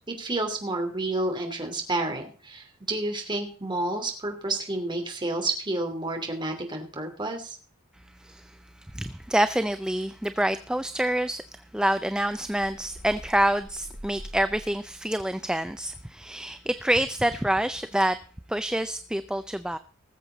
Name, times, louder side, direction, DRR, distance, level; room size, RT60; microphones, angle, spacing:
voice 1, 0.1-7.6, right 2 dB, 25° right, 3 dB, 2.9 m, -30 dB
voice 2, 8.2-11.4 11.7-18.2 18.5-19.8, right 1 dB, 5° right, 11 dB, 0.4 m, -27 dB
sound 1, 12.2-14.9, equal, 45° left, 4.4 m, -45 dB
19.5 x 7.5 x 4.0 m, 0.41 s
head